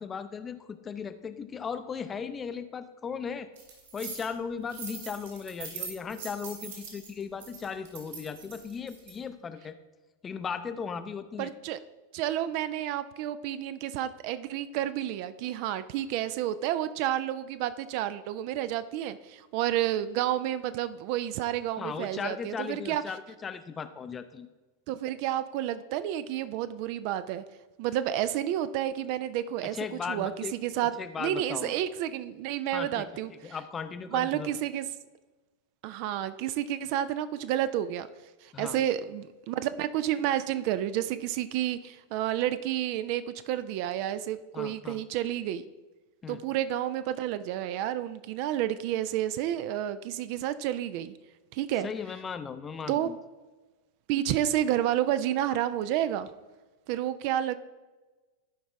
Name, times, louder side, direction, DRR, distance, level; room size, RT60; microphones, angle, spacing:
voice 1, 0.0-3.5 3.9-9.8 10.2-11.5 21.8-24.5 29.7-30.5 30.8-31.8 32.7-33.1 33.4-34.5 38.5-38.8 44.5-45.0 46.2-46.4 51.8-53.2, left 6 dB, 20° left, 11 dB, 0.6 m, -37 dB
sound 1, 3.6-4.2 4.7-9.2, right 5 dB, 60° right, 2.5 m, -42 dB
voice 2, 11.4-11.8 12.1-23.0 24.9-27.4 27.8-30.3 30.6-30.9 31.2-33.3 34.1-34.9 35.8-38.1 38.4-45.6 46.3-51.1 51.5-51.9 52.9-53.1 54.1-56.3 56.9-57.5, right 12 dB, 45° right, 13 dB, 0.4 m, -30 dB
13.5 x 5.1 x 3.4 m, 1.2 s
figure-of-eight pair, 90°, 0 cm